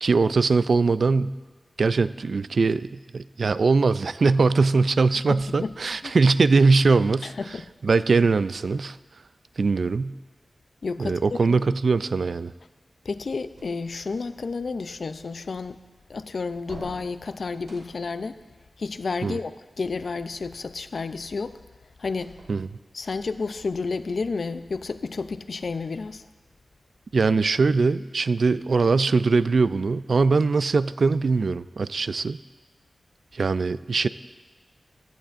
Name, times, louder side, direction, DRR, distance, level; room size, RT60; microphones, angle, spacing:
voice 1, 0.0-1.4 1.8-7.3 7.8-9.0 9.6-10.2 11.0-12.5 19.2-19.4 22.5-22.7 27.1-32.4 33.3-34.1, right 4 dB, 65° right, 15 dB, 0.3 m, -21 dB
voice 2, 5.3-5.7 6.0-6.2 7.2-7.7 10.8-11.7 13.0-15.8 16.1-18.4 18.8-21.6 22.0-22.3 22.9-26.3, left 4 dB, 65° left, 11 dB, 0.5 m, -31 dB
sound 1, 13.5-14.3 16.6-18.2 22.1-23.1, right 2 dB, 80° right, 2.4 m, -47 dB
16.5 x 14.5 x 2.6 m, 1.3 s
wide cardioid pair, 105°, 0 cm